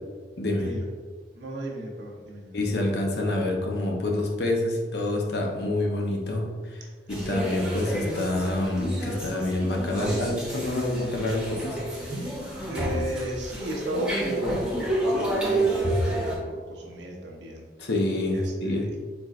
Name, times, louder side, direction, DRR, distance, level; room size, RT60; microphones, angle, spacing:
voice 1, 0.4-0.7 2.5-6.8 7.1-11.8 17.8-18.9, left 1 dB, 70° left, 0 dB, 0.8 m, -27 dB
voice 2, 1.3-2.6 7.3-7.7 12.7-17.6 18.3-19.0, right 1 dB, 85° right, -1 dB, 0.8 m, -35 dB
sound 1, 7.1-16.4, right 1 dB, 5° right, 0.8 m, -29 dB
4.4 x 4.2 x 2.5 m, 1.5 s
head